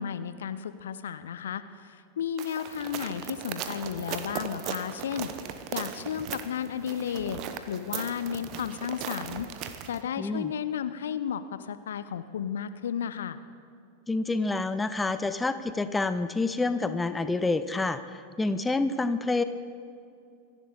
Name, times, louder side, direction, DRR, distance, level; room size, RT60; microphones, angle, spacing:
voice 1, 0.0-5.3 5.7-7.4 7.7-13.4, left 8 dB, 65° left, 13 dB, 0.7 m, -33 dB
sound 1, 2.4-10.0, right 9 dB, 40° right, 1.0 m, -38 dB
voice 2, 10.2-10.5 14.1-19.4, left 3 dB, 10° left, 12 dB, 0.6 m, -28 dB
26.0 x 11.0 x 4.0 m, 2.4 s
figure-of-eight pair, 90°, 0 cm